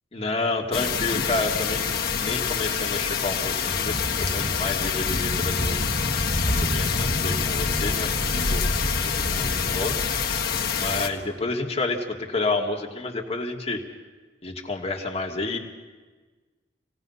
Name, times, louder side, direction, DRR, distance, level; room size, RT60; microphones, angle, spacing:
voice 1, 0.1-5.8 6.5-8.7 9.0-9.9 10.8-13.8 14.4-15.6, left 3 dB, 35° left, 2 dB, 2.0 m, -30 dB
sound 1, 0.7-11.1, left 5 dB, 60° left, 1.6 m, -25 dB
27.0 x 18.0 x 5.6 m, 1.3 s
head